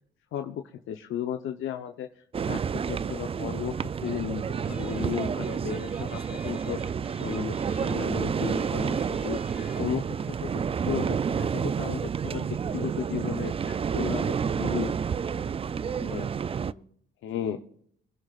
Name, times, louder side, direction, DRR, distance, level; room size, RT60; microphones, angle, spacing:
voice 1, 0.3-2.6 2.9-3.7 4.0-6.8 7.2-10.0 10.3-13.5 13.9-14.3 14.6-14.9 16.0-16.2 17.2-17.6, left 10 dB, 80° left, 5 dB, 0.9 m, -34 dB
sound 1, 2.3-16.7, right 7 dB, 30° right, 0.4 m, -30 dB
sound 2, 4.0-4.3 4.5-10.4 10.7-10.8 11.0-11.2, equal, 5° right, 1.3 m, -51 dB
voice 2, 9.4-10.0 13.5-14.8 15.3-15.5 15.8-16.9 17.2-17.6, left 4 dB, 40° left, 0 dB, 4.2 m, -50 dB
25.5 x 10.5 x 2.5 m, 0.64 s
cardioid pair, 90°, 20 cm